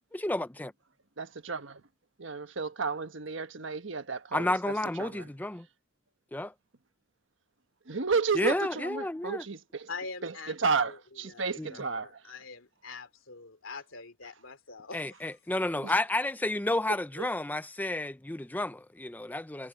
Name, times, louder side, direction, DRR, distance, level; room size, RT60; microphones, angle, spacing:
voice 1, 0.1-0.7 4.3-5.7 6.3-6.5 8.3-9.4 11.6-11.7 14.9-19.7, left 1 dB, 10° left, 0.5 m, -31 dB
voice 2, 1.2-1.8 2.2-5.3 7.9-9.9 10.2-12.2 15.8-15.9 17.2-17.3, right 5 dB, 70° right, 1.3 m, -32 dB
voice 3, 9.9-10.5 10.9-11.0 11.2-11.4 11.7-15.2, left 4 dB, 85° left, 2.9 m, -44 dB
head